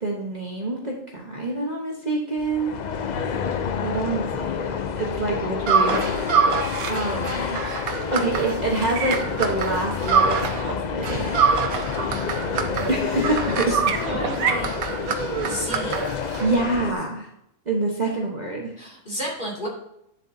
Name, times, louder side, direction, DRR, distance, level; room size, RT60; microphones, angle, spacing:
voice 1, 0.0-2.8 3.8-6.2 6.9-7.7 8.1-11.3 12.9-14.3 16.4-17.3 17.7-18.7, right 2 dB, 35° right, -2 dB, 1.1 m, -27 dB
sound 1, 2.4-16.9, left 7 dB, 80° left, 0.4 m, -29 dB
sound 2, 5.7-10.7 11.0-16.6, right 6 dB, 85° right, 1.2 m, -25 dB
voice 2, 14.0-14.7 15.4-16.0 18.0-18.1 18.8-19.7, equal, 35° left, -4 dB, 2.5 m, -32 dB
9.9 x 7.2 x 2.7 m, 0.79 s
omnidirectional pair, 1.5 m